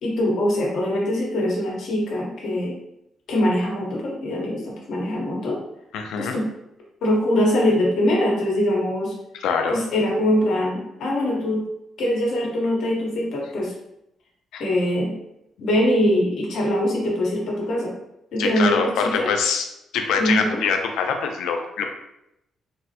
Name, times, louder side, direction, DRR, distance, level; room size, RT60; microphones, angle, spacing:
voice 1, 0.0-2.8 3.3-5.6 6.2-6.5 7.0-9.2 9.7-11.6 12.0-13.7 14.6-15.1 15.6-17.9 18.3-19.3 20.2-20.6, left 1 dB, 70° left, -3 dB, 1.0 m, -22 dB
voice 2, 5.9-6.3 9.4-9.8 14.5-14.6 18.4-19.7 19.9-21.9, left 5 dB, 85° left, 4 dB, 0.4 m, -24 dB
3.4 x 2.0 x 2.8 m, 0.84 s
cardioid pair, 90°, 0 cm